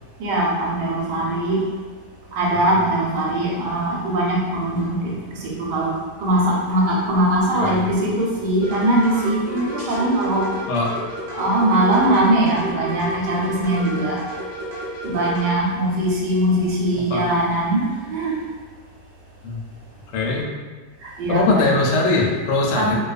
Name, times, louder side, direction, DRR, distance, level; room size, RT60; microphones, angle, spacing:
voice 1, 0.2-1.6 2.4-4.9 5.7-5.9 6.2-10.4 11.4-14.2 15.0-18.3 21.2-21.7 22.8-23.0, right 1 dB, 90° right, -3 dB, 1.2 m, -21 dB
sound 1, 8.6-15.5, right 1 dB, 65° right, 0.3 m, -31 dB
voice 2, 20.1-20.4 21.3-22.9, left 3 dB, 85° left, -2 dB, 1.2 m, -20 dB
2.7 x 2.3 x 2.4 m, 1.4 s
omnidirectional pair, 1.8 m